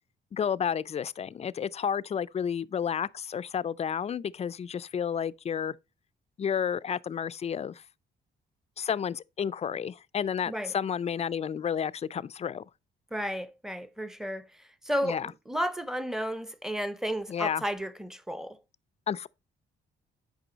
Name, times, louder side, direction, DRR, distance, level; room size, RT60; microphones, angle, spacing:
voice 1, 0.3-5.8 6.4-7.8 8.8-12.6 15.0-15.3 17.3-17.6 19.1-19.3, left 8 dB, 35° left, 0.4 m, -31 dB
voice 2, 13.1-18.6, equal, ahead, 0.7 m, -33 dB
8.9 x 5.3 x 3.9 m
cardioid pair, 90°, 20 cm